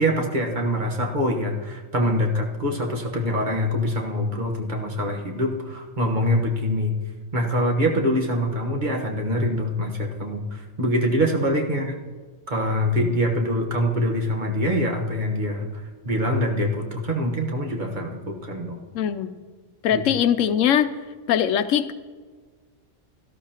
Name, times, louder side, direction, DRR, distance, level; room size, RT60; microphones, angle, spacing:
voice 1, 0.0-7.0 7.3-11.9 12.5-18.8 19.9-20.0, equal, 40° right, 1 dB, 1.3 m, -24 dB
voice 2, 18.9-19.3 19.8-20.9 21.3-21.9, left 9 dB, 80° left, 12 dB, 0.9 m, -21 dB
17.0 x 12.5 x 2.9 m, 1.5 s
omnidirectional pair, 1.3 m